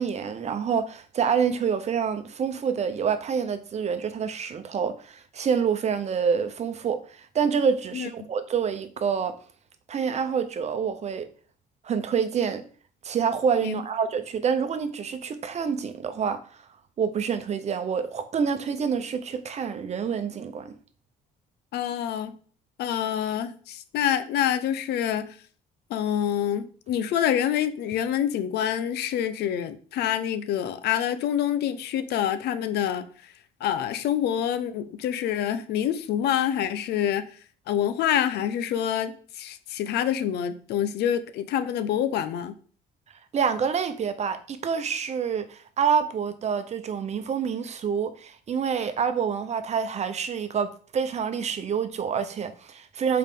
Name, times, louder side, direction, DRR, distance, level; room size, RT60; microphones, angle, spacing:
voice 1, 0.0-9.3 9.9-11.3 11.8-12.6 13.0-16.4 17.0-20.7 43.3-53.2, right 6 dB, 40° right, 0.9 m, -27 dB
voice 2, 21.7-22.3 22.8-25.4 25.9-33.3 33.6-37.3 37.7-42.6, left 10 dB, 75° left, 0.8 m, -26 dB
7.3 x 4.7 x 3.8 m
cardioid pair, 110°, 17 cm